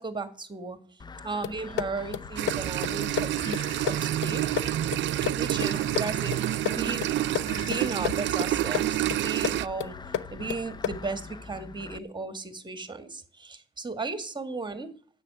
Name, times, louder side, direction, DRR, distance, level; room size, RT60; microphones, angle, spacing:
voice 1, 0.0-4.4 5.3-6.3 6.6-7.1 7.5-10.0 10.3-14.9, right 3 dB, 25° right, 11 dB, 1.7 m, -35 dB
sound 1, 1.0-12.0, left 4 dB, 20° left, 0.5 m, -44 dB
sound 2, 1.4-11.2, left 9 dB, 90° left, 0.7 m, -34 dB
sound 3, 2.4-9.7, right 14 dB, 70° right, 0.5 m, -28 dB
10.5 x 8.4 x 7.8 m, 0.43 s
cardioid pair, 90°, 20 cm